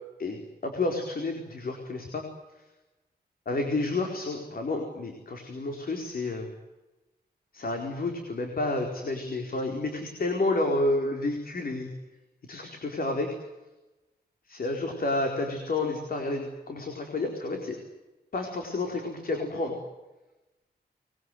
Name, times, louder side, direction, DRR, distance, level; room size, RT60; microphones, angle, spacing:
voice 1, 0.2-2.2 2.6-2.7 3.5-6.5 7.5-11.9 12.5-13.4 14.6-17.8 18.3-19.8, left 2 dB, 65° left, 3 dB, 4.6 m, -30 dB
25.5 x 22.0 x 9.4 m, 1.1 s
wide cardioid pair, 125°, 17 cm